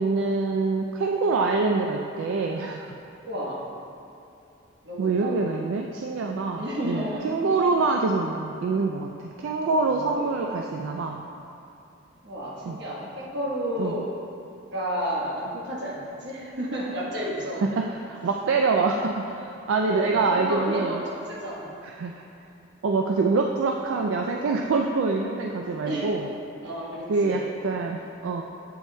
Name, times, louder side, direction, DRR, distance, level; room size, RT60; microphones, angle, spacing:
voice 1, 0.0-3.0 5.0-11.2 12.6-12.8 13.8-14.0 17.8-20.9 22.0-22.2 22.8-26.3 27.1-28.4, right 3 dB, 75° right, 2 dB, 0.3 m, -25 dB
voice 2, 3.2-3.7 4.8-5.4 6.6-7.4 9.8-10.4 12.2-14.2 14.7-17.7 19.8-21.7 25.8-26.3 26.6-27.4, equal, 55° right, -5 dB, 1.1 m, -31 dB
8.1 x 5.9 x 2.2 m, 2.8 s
head